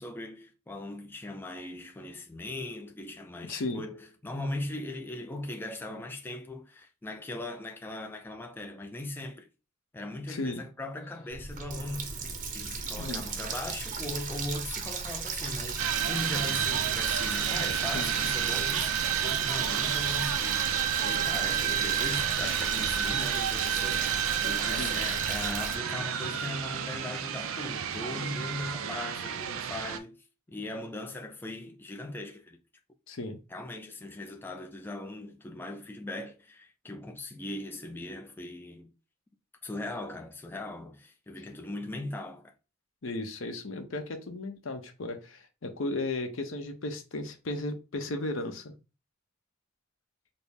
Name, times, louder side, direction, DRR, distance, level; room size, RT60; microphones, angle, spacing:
voice 1, 0.0-9.5 9.9-12.1 12.5-30.2 30.5-32.6 33.5-38.9 39.6-42.5, left 2 dB, 10° left, 0.3 m, -39 dB
voice 2, 3.5-3.8 10.3-10.6 13.0-13.3 17.9-18.2 24.8-25.0 33.1-33.4 43.0-48.7, left 2 dB, 70° left, 0.7 m, -35 dB
Water tap faucet, 11.3-25.8, right 5 dB, 40° right, 0.6 m, -35 dB
sound 1, 15.8-30.0, right 9 dB, 85° right, 0.4 m, -30 dB
4.1 x 2.0 x 3.5 m
head